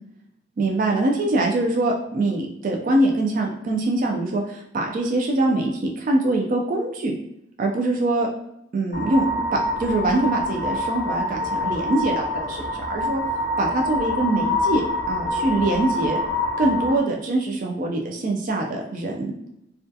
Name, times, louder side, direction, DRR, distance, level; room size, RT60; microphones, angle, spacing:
voice 1, 0.6-7.1 7.6-8.3 8.7-9.2 9.5-13.2 13.6-16.2 16.6-19.3, right 2 dB, 45° right, 1 dB, 0.3 m, -23 dB
sound 1, 8.9-17.0, left 1 dB, 70° left, 0.5 m, -26 dB
2.3 x 2.2 x 2.6 m, 0.77 s
head